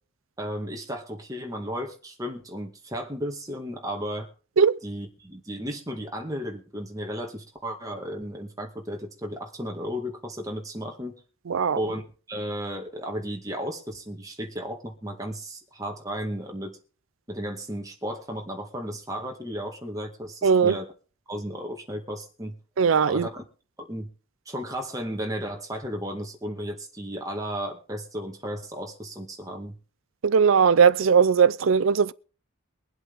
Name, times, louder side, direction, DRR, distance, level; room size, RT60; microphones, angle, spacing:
voice 1, 0.4-4.3 4.8-11.1 11.7-16.8 17.3-20.9 21.3-22.6 23.0-23.4 23.8-24.1 24.5-29.7, equal, 15° right, 2.0 m, -34 dB
voice 2, 11.5-11.8 20.4-20.8 22.8-23.3 30.2-32.1, right 6 dB, 75° right, 0.5 m, -19 dB
23.0 x 8.0 x 3.6 m
head